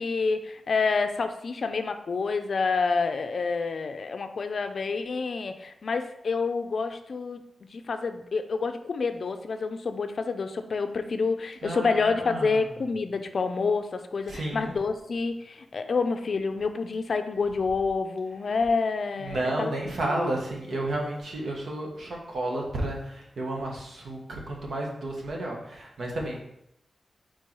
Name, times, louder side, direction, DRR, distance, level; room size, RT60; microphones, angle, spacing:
voice 1, 0.0-7.4 7.7-19.7 20.1-20.3, left 4 dB, 50° left, 8 dB, 0.5 m, -28 dB
voice 2, 11.6-12.6 14.3-14.7 19.2-26.4, right 1 dB, 65° right, -1 dB, 1.4 m, -32 dB
4.6 x 4.5 x 4.5 m, 0.79 s
wide cardioid pair, 145°, 0 cm